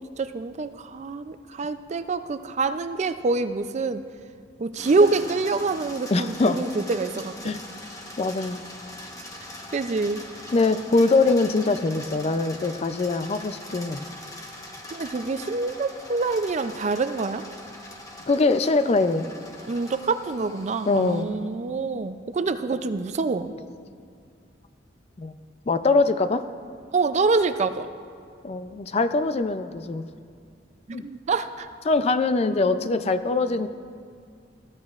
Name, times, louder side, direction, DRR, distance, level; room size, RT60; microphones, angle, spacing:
voice 1, 0.0-4.1 4.6-7.6 9.7-10.2 14.9-17.4 19.7-23.5 26.9-27.9 30.9-31.7, right 3 dB, 40° right, 11 dB, 0.4 m, -26 dB
sound 1, 4.8-21.2, left 1 dB, 20° left, 1.1 m, -42 dB
voice 2, 6.1-6.6 7.4-7.6 8.2-8.6 10.5-14.0 18.3-19.3 20.9-21.3 25.2-25.4 25.7-26.4 28.4-30.1 30.9-31.0 31.9-33.7, left 3 dB, 35° left, 11 dB, 0.4 m, -23 dB
19.0 x 13.5 x 2.4 m, 2.3 s
head